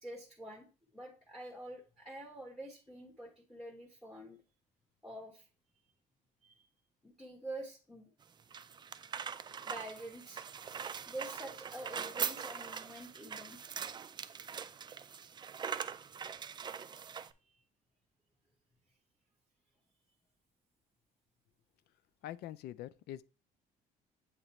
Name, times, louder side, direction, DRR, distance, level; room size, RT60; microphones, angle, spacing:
voice 1, 0.0-0.7 0.9-4.4 5.0-5.5 6.4-6.7 7.0-8.1 9.7-10.5 11.1-13.6 17.4-17.6, right 1 dB, ahead, 1.1 m, -47 dB
sound 1, 8.2-17.3, right 7 dB, 25° right, 0.3 m, -42 dB
voice 2, 22.2-23.2, left 13 dB, 75° left, 0.4 m, -44 dB
7.9 x 3.0 x 4.1 m
cardioid pair, 110°, 17 cm